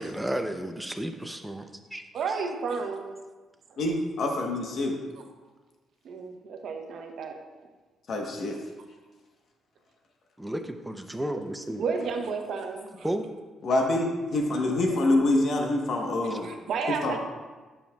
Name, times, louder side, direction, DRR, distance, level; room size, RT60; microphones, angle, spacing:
voice 1, 0.0-2.4 10.4-11.9 13.0-13.3 16.3-16.4, right 1 dB, 5° right, 6 dB, 0.6 m, -33 dB
voice 2, 2.1-3.1 3.7-3.8 6.0-7.4 11.8-13.1 14.7-14.8 16.4-17.2, right 5 dB, 65° right, 3 dB, 0.9 m, -32 dB
voice 3, 3.8-5.0 8.1-8.6 13.6-16.5 17.0-17.2, left 2 dB, 60° left, 1 dB, 1.1 m, -26 dB
8.9 x 7.0 x 2.3 m, 1.3 s
cardioid pair, 90°, 0 cm